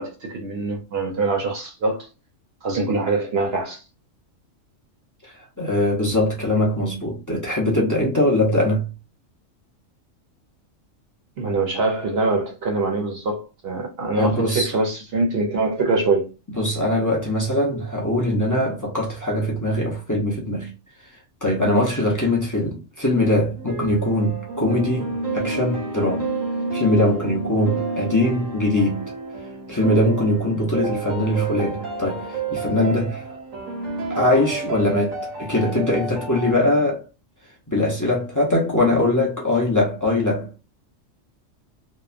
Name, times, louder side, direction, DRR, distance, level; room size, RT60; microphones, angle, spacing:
voice 1, 0.0-2.1 2.6-3.8 11.4-16.3, right 3 dB, 55° right, 0.8 m, -24 dB
voice 2, 5.2-8.9 14.2-14.7 16.6-20.7 21.4-26.2 26.7-29.0 29.7-33.3 34.1-37.1 37.7-40.6, left 1 dB, 25° left, 0.4 m, -22 dB
sound 1, 23.6-36.5, right 4 dB, 90° right, 1.3 m, -30 dB
2.9 x 2.2 x 2.4 m
omnidirectional pair, 1.3 m